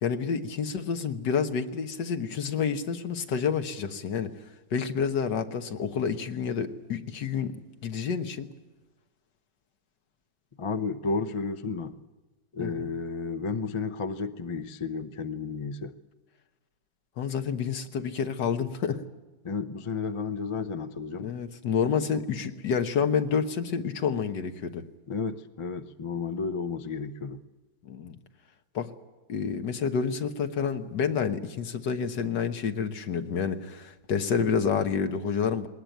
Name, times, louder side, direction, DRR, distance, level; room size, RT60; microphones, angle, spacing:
voice 1, 0.0-4.3 4.7-7.5 7.8-8.5 12.6-12.9 17.2-19.0 21.2-24.8 27.8-28.2 28.8-28.9 29.3-35.7, left 6 dB, 75° left, 1.8 m, -29 dB
voice 2, 10.6-12.0 12.5-15.9 19.4-21.3 25.1-27.4, left 4 dB, 35° left, 0.4 m, -32 dB
21.0 x 19.0 x 9.2 m
omnidirectional pair, 1.9 m